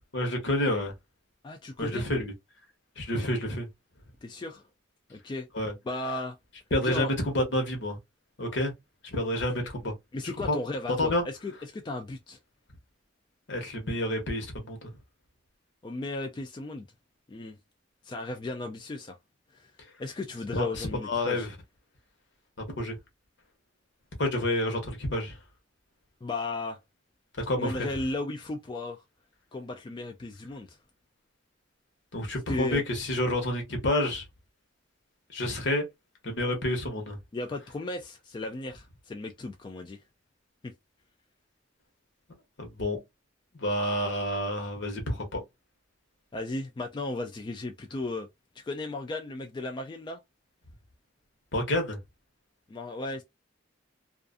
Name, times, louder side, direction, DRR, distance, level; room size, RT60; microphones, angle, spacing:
voice 1, 0.1-0.9 1.8-2.3 3.0-3.7 5.5-5.7 6.7-7.1 7.3-8.0 8.4-8.7 9.0-9.9 10.4-10.6 11.0-11.2 13.5-14.9 20.5-21.5 22.7-23.0 24.2-25.4 27.5-27.9 32.1-34.2 35.3-35.9 36.2-37.2 42.6-43.0 43.6-45.4 51.5-52.0, left 1 dB, 65° left, 1.0 m, -29 dB
voice 2, 1.4-2.0 4.2-4.6 5.1-5.5 5.8-6.4 6.8-7.1 9.6-9.7 10.1-12.4 15.8-16.9 17.3-17.6 18.0-19.2 19.5-19.7 20.0-21.5 26.2-26.8 27.5-29.0 29.5-30.8 32.5-32.8 37.3-40.0 40.6-40.7 46.3-48.3 48.6-50.2 52.7-53.2, left 2 dB, 25° left, 0.3 m, -35 dB
2.5 x 2.4 x 2.4 m
head